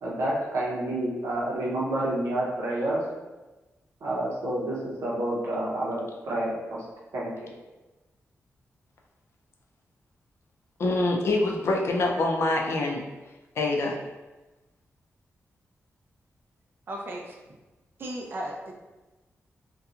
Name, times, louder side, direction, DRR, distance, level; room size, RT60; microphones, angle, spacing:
voice 1, 0.0-3.0 4.0-4.8 5.0-6.6 7.1-7.3, right 1 dB, 85° right, -5 dB, 0.6 m, -28 dB
voice 2, 10.8-13.0 13.6-14.0, left 2 dB, 60° left, 0 dB, 0.4 m, -25 dB
voice 3, 16.9-17.6 18.0-18.7, right 1 dB, 50° right, -1 dB, 0.4 m, -36 dB
2.7 x 2.2 x 2.4 m, 1.1 s
wide cardioid pair, 145°, 5 cm